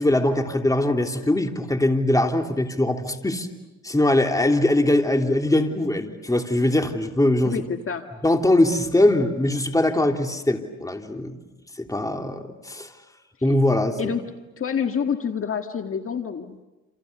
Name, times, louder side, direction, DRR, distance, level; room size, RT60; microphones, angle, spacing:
voice 1, 0.0-3.5 3.8-7.6 8.2-11.4 11.8-12.9 13.4-14.1, left 1 dB, 10° left, 4 dB, 3.2 m, -21 dB
voice 2, 7.4-8.1 13.4-13.5 14.0-14.2 14.6-16.6, left 7 dB, 45° left, 5 dB, 1.8 m, -27 dB
28.5 x 28.5 x 6.9 m, 1.1 s
cardioid pair, 90°, 30 cm